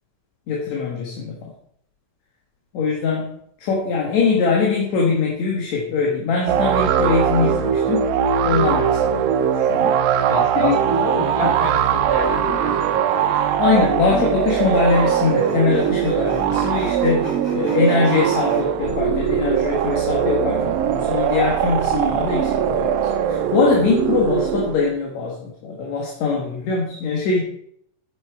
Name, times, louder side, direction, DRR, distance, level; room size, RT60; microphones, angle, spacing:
voice 1, 0.5-1.5 2.7-3.3 3.6-8.1 8.5-10.0 10.6-10.8 11.4-11.5 13.3-23.0 23.3-27.4, left 4 dB, 60° left, -2 dB, 2.4 m, -22 dB
sound 1, 6.5-24.9, right 9 dB, 85° right, 2.6 m, -21 dB
voice 2, 10.2-13.5, equal, 20° right, -2 dB, 1.1 m, -28 dB
Sawing, 13.2-13.4 14.4-18.6, right 1 dB, 10° left, 2.7 m, -38 dB
8.6 x 8.2 x 4.4 m, 0.66 s
omnidirectional pair, 4.0 m